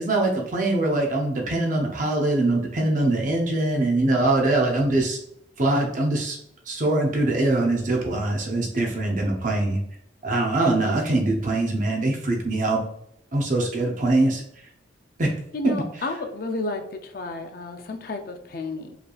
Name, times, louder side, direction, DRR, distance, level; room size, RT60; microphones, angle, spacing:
voice 1, 0.0-5.2 5.6-6.4 6.7-9.8 10.2-12.8 13.3-14.4 15.2-15.3 15.6-15.7, right 2 dB, 40° right, 0 dB, 0.6 m, -23 dB
voice 2, 15.5-19.0, left 3 dB, 50° left, 6 dB, 0.4 m, -32 dB
4.8 x 3.2 x 2.3 m, 0.75 s
head